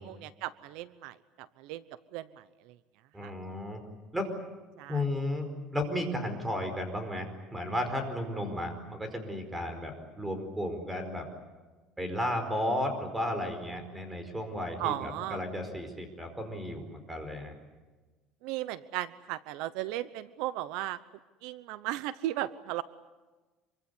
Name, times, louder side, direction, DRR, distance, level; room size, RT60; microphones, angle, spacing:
voice 1, 0.0-1.8 2.1-2.7 3.2-3.3 4.8-5.0 14.8-15.4 18.4-21.0 21.4-22.8, right 14 dB, 80° right, 15 dB, 0.8 m, -36 dB
voice 2, 3.1-3.8 4.1-4.3 4.9-11.3 12.0-17.5, left 1 dB, 10° right, 7 dB, 4.8 m, -34 dB
26.0 x 24.0 x 8.3 m, 1.2 s
cardioid pair, 145°, 0 cm